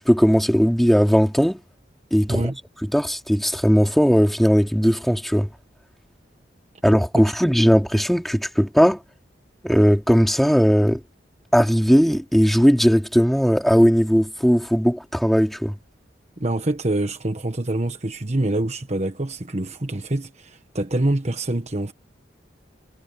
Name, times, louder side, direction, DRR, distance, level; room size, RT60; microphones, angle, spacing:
voice 1, 0.1-1.6 2.1-2.4 2.9-5.5 6.8-9.0 9.6-11.0 11.5-15.7, equal, ahead, 2.9 m, -18 dB
voice 2, 16.4-21.9, right 1 dB, 35° right, 1.3 m, -25 dB
head